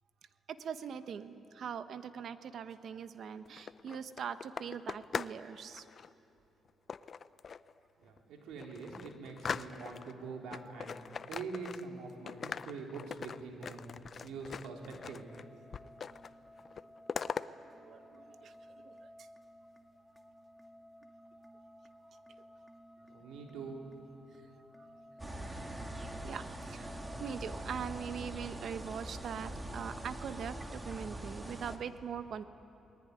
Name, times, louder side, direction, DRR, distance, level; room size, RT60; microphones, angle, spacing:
voice 1, 0.5-5.8 17.8-18.5 18.8-19.1 26.2-32.5, right 7 dB, 60° right, 11 dB, 1.2 m, -42 dB
sound 1, 3.5-5.4 5.7-6.1 6.9-7.7 8.2-8.3 8.6-10.1 10.5-12.0 12.3-15.4 15.7-16.3 16.6-17.5, left 6 dB, 45° left, 0.6 m, -41 dB
voice 2, 8.0-13.9 14.2-15.2 23.1-23.9, right 4 dB, 85° right, 1 dB, 4.0 m, -44 dB
sound 2, 14.8-29.0, equal, ahead, 2.0 m, -55 dB
sound 3, 25.2-31.8, right 1 dB, 15° right, 2.3 m, -43 dB
27.5 x 20.0 x 9.9 m, 2.9 s
cardioid pair, 90°, 0 cm